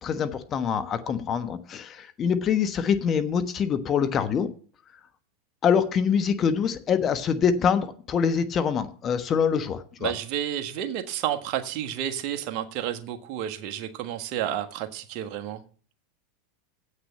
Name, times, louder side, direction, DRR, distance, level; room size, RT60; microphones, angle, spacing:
voice 1, 0.0-4.5 5.6-10.1, left 7 dB, 35° left, 1.2 m, -25 dB
voice 2, 10.0-15.6, right 10 dB, 50° right, 1.5 m, -31 dB
8.2 x 6.6 x 7.7 m
hypercardioid pair, 95°, 0 cm